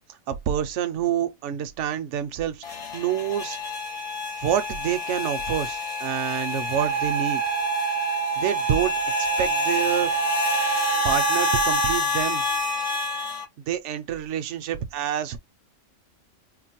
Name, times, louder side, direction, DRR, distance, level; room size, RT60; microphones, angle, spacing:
voice 1, 0.3-3.6 4.4-7.4 8.4-8.9 9.4-10.1 11.0-12.4 13.7-15.4, right 9 dB, 65° right, 0.8 m, -27 dB
sound 1, 2.6-13.4, left 4 dB, 55° left, 0.4 m, -28 dB
Wind instrument woodwind instrument, 6.7-12.1, right 11 dB, 20° right, 0.6 m, -27 dB
3.8 x 2.1 x 2.9 m
omnidirectional pair, 1.5 m